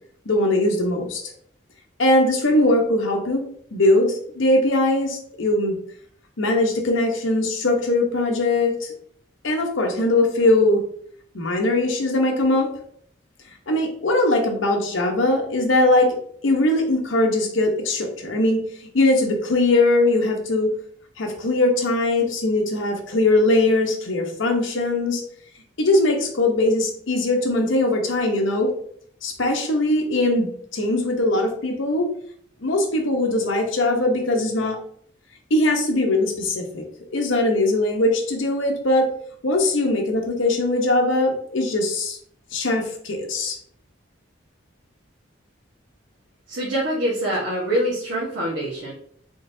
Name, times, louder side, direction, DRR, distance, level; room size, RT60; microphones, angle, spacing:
voice 1, 0.3-1.3 2.0-5.8 6.4-8.9 9.4-10.8 11.3-12.7 13.7-16.2 16.4-18.6 18.9-20.7 21.2-25.2 25.8-28.7 29.2-32.1 32.6-34.8 35.5-36.8 37.1-39.1 39.4-42.2 42.5-43.6, left 2 dB, 80° left, 3 dB, 0.9 m, -21 dB
voice 2, 46.5-48.9, right 1 dB, 75° right, -6 dB, 1.2 m, -24 dB
3.8 x 3.7 x 2.6 m, 0.62 s
head